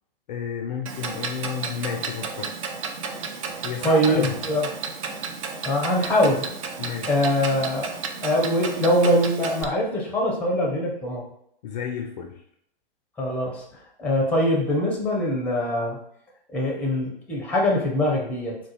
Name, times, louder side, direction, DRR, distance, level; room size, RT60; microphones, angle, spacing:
voice 1, 0.3-2.5 3.6-4.4 6.8-7.1 11.6-12.4, left 6 dB, 45° left, 3 dB, 0.4 m, -31 dB
Clock, 0.9-9.6, right 5 dB, 35° right, 0.4 m, -33 dB
voice 2, 3.5-4.6 5.6-6.5 7.1-11.2 13.2-13.6 14.0-16.0 16.5-18.6, left 1 dB, 5° left, -1 dB, 0.7 m, -23 dB
3.8 x 2.2 x 2.9 m, 0.73 s
figure-of-eight pair, 110°, 29 cm